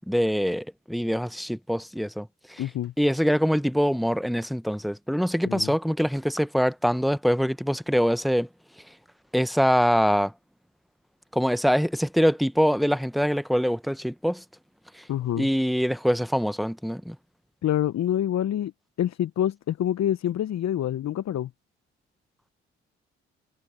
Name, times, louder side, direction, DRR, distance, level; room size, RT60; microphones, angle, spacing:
voice 1, 0.1-2.6 3.0-8.5 9.3-10.3 11.3-14.4 14.9-15.0 15.4-17.2, equal, ahead, 1.2 m, -24 dB
voice 2, 2.6-2.9 5.5-5.7 15.1-15.5 17.6-18.7 19.0-21.5, left 11 dB, 55° left, 1.1 m, -26 dB
hypercardioid pair, 45°, 33 cm